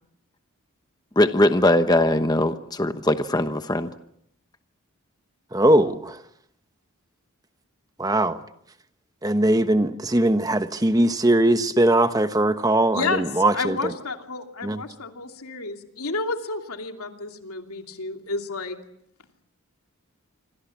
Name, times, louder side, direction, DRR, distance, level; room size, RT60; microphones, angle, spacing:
voice 1, 1.2-3.9, left 1 dB, 20° left, 1.1 m, -20 dB
voice 2, 5.5-6.2 8.0-8.4 9.2-13.9 14.6-14.8, right 1 dB, 15° right, 1.0 m, -20 dB
voice 3, 12.9-18.8, left 3 dB, 85° left, 2.9 m, -31 dB
26.5 x 26.0 x 7.3 m
head